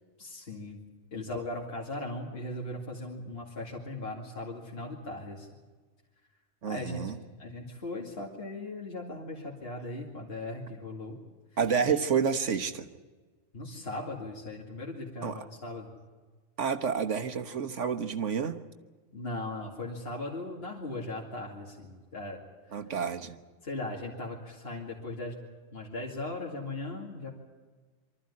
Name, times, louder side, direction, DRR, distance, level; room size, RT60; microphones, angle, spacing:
voice 1, 0.2-0.8 1.1-5.5 6.7-7.1 7.4-11.2 11.8-11.9 13.5-15.9 19.1-22.4 22.7-22.8 23.6-27.3, left 2 dB, 50° left, -2 dB, 2.7 m, -38 dB
voice 2, 6.6-7.2 11.6-12.9 15.2-15.4 16.6-18.6 22.7-23.4, right 6 dB, 70° right, 7 dB, 1.5 m, -29 dB
24.0 x 13.5 x 9.7 m, 1.4 s
omnidirectional pair, 1.3 m